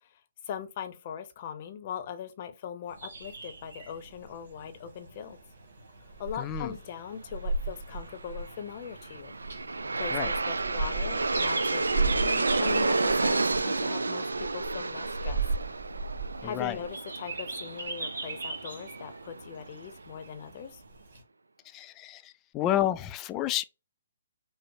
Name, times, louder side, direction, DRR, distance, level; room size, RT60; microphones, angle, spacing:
voice 1, 0.0-5.4 6.2-9.3 10.0-15.4 16.4-20.8, left 8 dB, 45° left, 0.7 m, -40 dB
sound 1, 2.9-21.2, right 3 dB, 70° right, 1.4 m, -36 dB
voice 2, 6.4-6.7 10.1-10.3 16.4-16.8 21.7-23.6, left 12 dB, 25° left, 0.3 m, -30 dB
Aircraft, 8.8-19.9, right 3 dB, 90° right, 0.3 m, -31 dB
5.2 x 2.0 x 2.7 m
hypercardioid pair, 140°, 0 cm